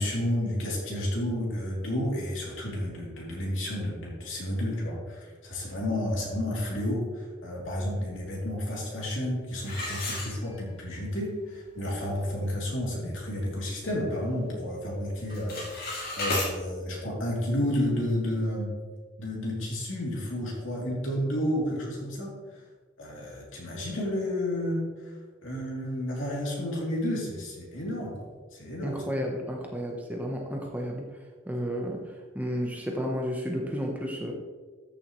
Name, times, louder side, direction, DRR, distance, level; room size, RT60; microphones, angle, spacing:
voice 1, 0.0-15.6 16.2-18.7 19.2-22.6 23.0-28.2 28.5-29.0, left 1 dB, 75° left, -3 dB, 3.1 m, -31 dB
sound 1, 9.6-10.9 11.4-11.5 12.0-12.1 12.5-12.8 13.3-14.4 14.6-15.0 15.2-16.5, left 2 dB, 50° left, 2.6 m, -34 dB
voice 2, 28.8-31.1 31.5-34.3, equal, 10° right, 0 dB, 0.9 m, -32 dB
13.5 x 7.0 x 3.2 m, 1.5 s
head